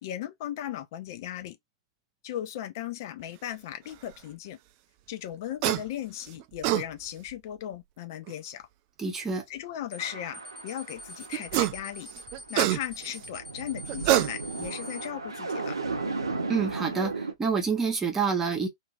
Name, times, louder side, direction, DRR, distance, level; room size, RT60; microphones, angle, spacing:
voice 1, 0.0-1.6 2.2-4.6 5.1-8.7 9.5-12.1 12.5-15.8, left 11 dB, 50° left, 0.4 m, -37 dB
sound 1, 5.6-5.8 6.4-6.8 8.3-8.4 11.3-11.8 12.1-13.2 13.9-14.7, right 14 dB, 40° right, 0.3 m, -25 dB
voice 2, 9.0-9.4 16.5-18.7, right 5 dB, 15° right, 0.9 m, -27 dB
sound 2, 9.9-10.1 10.3-15.1, equal, 10° left, 0.9 m, -44 dB
sound 3, 10.0-12.5 13.0-17.3, right 3 dB, 80° right, 0.7 m, -35 dB
2.9 x 2.6 x 2.3 m
figure-of-eight pair, 105°, 2 cm